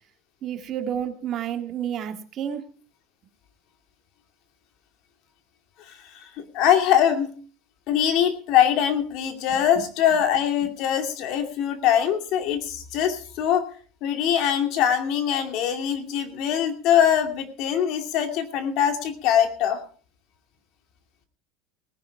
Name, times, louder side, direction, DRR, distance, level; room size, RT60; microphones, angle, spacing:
voice 1, 0.4-2.6 9.5-9.6, right 9 dB, 40° right, 7 dB, 1.9 m, -30 dB
voice 2, 6.5-7.3 7.9-13.6 14.0-19.8, left 9 dB, 55° left, 7 dB, 2.4 m, -22 dB
18.5 x 10.5 x 4.7 m, 0.42 s
cardioid pair, 145°, 0 cm